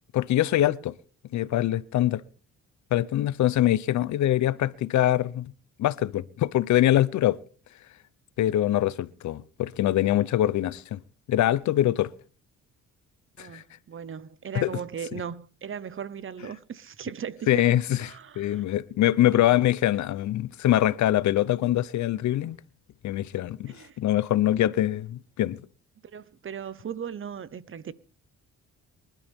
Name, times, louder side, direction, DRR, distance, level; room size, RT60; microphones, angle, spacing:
voice 1, 0.1-0.9 1.3-2.2 2.9-5.5 5.8-7.4 8.4-11.0 11.3-12.1 13.4-13.6 14.5-14.7 17.5-18.1 18.4-22.6 23.0-25.6, left 13 dB, 70° left, 0.8 m, -24 dB
voice 2, 13.4-18.6 19.3-19.6 22.3-22.5 23.7-24.0 26.0-27.9, right 7 dB, 45° right, 1.0 m, -38 dB
24.0 x 12.0 x 3.6 m
cardioid pair, 90°, 30 cm